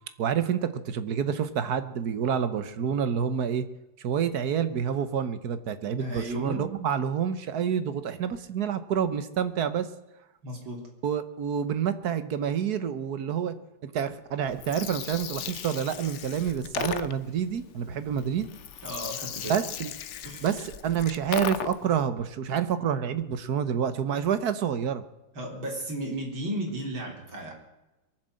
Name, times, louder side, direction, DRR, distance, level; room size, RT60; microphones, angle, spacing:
voice 1, 0.2-3.6 4.0-9.9 11.0-13.5 13.8-18.5 19.5-19.9 20.4-25.0, right 8 dB, 55° right, 12 dB, 1.4 m, -28 dB
voice 2, 6.0-6.6 10.4-10.8 18.8-19.6 20.2-20.5 25.3-27.5, right 1 dB, 70° right, 0 dB, 4.5 m, -34 dB
Gurgling, 14.5-22.0, left 9 dB, 90° left, 0.6 m, -37 dB
22.5 x 7.6 x 7.7 m, 0.99 s
omnidirectional pair, 2.2 m